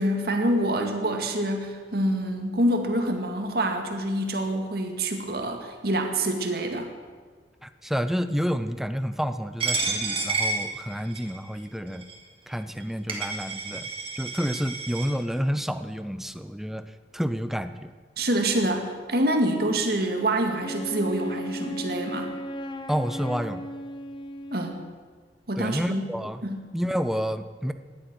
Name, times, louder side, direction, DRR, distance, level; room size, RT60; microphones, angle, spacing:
voice 1, 0.0-6.9 18.2-22.4 24.5-24.8 25.5-26.0 26.4-26.6, right 1 dB, 60° right, 4 dB, 1.9 m, -26 dB
voice 2, 7.6-12.1 12.5-13.9 14.2-17.9 22.9-23.6 25.6-26.4 26.7-27.7, equal, ahead, 10 dB, 0.6 m, -29 dB
Coin (dropping), 9.6-11.4 12.0-12.1 12.8-12.9 13.1-15.1, right 3 dB, 30° right, 2.7 m, -30 dB
Wind instrument woodwind instrument, 20.6-25.0, equal, 25° left, 0.8 m, -36 dB
17.0 x 11.5 x 6.2 m, 1.5 s
head